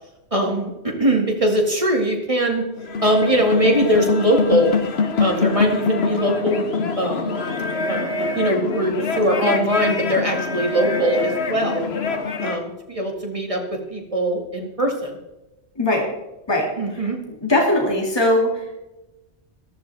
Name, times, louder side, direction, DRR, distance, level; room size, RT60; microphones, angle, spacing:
voice 1, 0.3-2.6 3.0-4.7 5.2-6.7 7.0-7.3 7.9-11.9 12.4-15.2 16.8-17.2, right 1 dB, 30° right, 1 dB, 2.2 m, -21 dB
sound 1, 2.8-12.6, left 4 dB, 65° left, 1.3 m, -24 dB
voice 2, 15.8-16.1 16.5-17.0 17.4-18.7, left 1 dB, 20° left, -1 dB, 2.2 m, -20 dB
14.0 x 13.5 x 3.4 m, 1.0 s
omnidirectional pair, 1.1 m